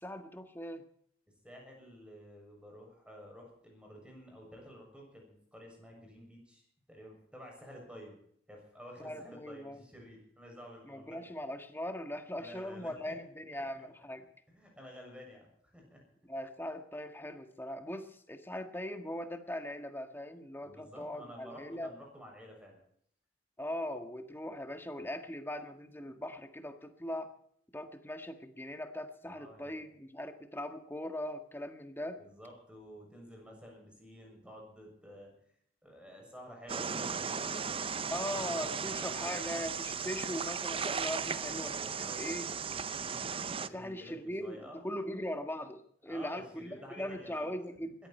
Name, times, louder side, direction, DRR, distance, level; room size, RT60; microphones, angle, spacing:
voice 1, 0.0-0.8 9.0-9.8 10.8-14.2 16.3-21.9 23.6-27.3 27.7-32.2 38.1-42.5 43.6-47.9, left 1 dB, 10° left, 7 dB, 1.7 m, -40 dB
voice 2, 1.4-8.2 8.5-11.3 12.3-13.1 13.6-13.7 14.5-16.0 20.6-22.8 29.3-29.9 32.1-35.3 35.8-39.5 41.8-42.2 43.7-44.8 46.1-47.5, equal, 5° right, 0 dB, 7.2 m, -51 dB
sound 1, 36.7-43.7, right 6 dB, 30° right, 0.6 m, -36 dB
21.0 x 14.5 x 4.5 m, 0.65 s
head